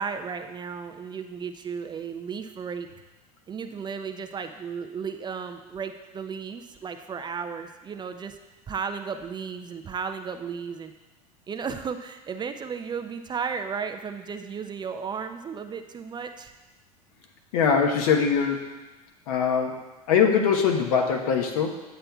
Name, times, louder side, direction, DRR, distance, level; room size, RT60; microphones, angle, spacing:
voice 1, 0.0-2.9 3.5-8.4 8.7-10.9 11.5-16.5, right 6 dB, 25° right, 7 dB, 0.4 m, -34 dB
voice 2, 17.5-18.7 19.3-21.8, left 6 dB, 70° left, 2 dB, 1.1 m, -22 dB
9.1 x 7.6 x 2.3 m, 1.1 s
hypercardioid pair, 85°, 19 cm